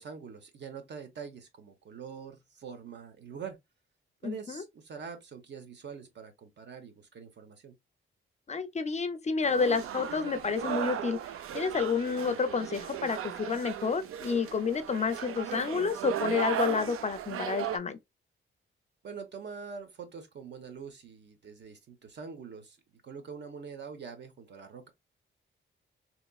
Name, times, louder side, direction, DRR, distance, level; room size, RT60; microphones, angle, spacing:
voice 1, 0.0-3.6 4.2-7.7 19.0-24.9, right 6 dB, 55° right, 1.0 m, -44 dB
voice 2, 4.2-4.6 8.5-11.2 11.5-18.0, left 5 dB, 35° left, 0.4 m, -30 dB
sound 1, 9.4-17.8, right 10 dB, 85° right, 0.5 m, -36 dB
4.0 x 2.9 x 2.3 m
wide cardioid pair, 160°, 21 cm